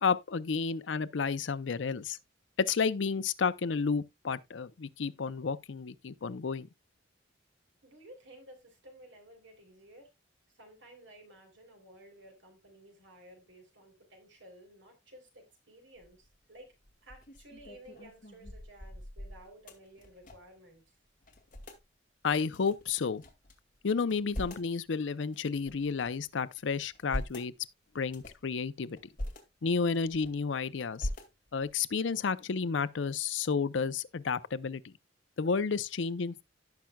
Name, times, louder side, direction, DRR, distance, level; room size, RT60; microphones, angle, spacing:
voice 1, 0.0-2.2 2.6-6.7 22.2-23.2 23.8-27.5 27.9-29.0 29.6-31.1 31.5-34.9 35.4-36.4, left 5 dB, 70° left, 0.5 m, -31 dB
voice 2, 7.8-10.1 10.5-16.7 17.0-21.0, right 1 dB, 70° right, 3.5 m, -55 dB
sound 1, 16.0-16.3 16.8-20.6 20.9-21.0 21.2-21.8 22.5-23.5 24.0-24.7 25.3-26.3 26.8-27.5 28.0-28.5 29.0-29.4 29.9-30.5 31.0-31.7, left 1 dB, 45° left, 2.1 m, -42 dB
16.5 x 5.8 x 2.3 m
head